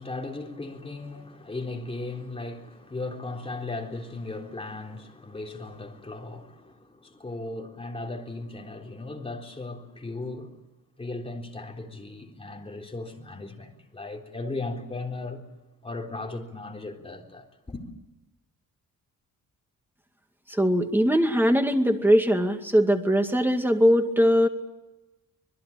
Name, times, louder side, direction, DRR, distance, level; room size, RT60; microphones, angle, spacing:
voice 1, 0.0-10.6 11.0-15.5 15.8-17.8, left 2 dB, 15° left, 3.7 m, -37 dB
voice 2, 20.5-24.5, equal, 5° right, 2.2 m, -21 dB
26.0 x 21.0 x 8.8 m
wide cardioid pair, 160°, 33 cm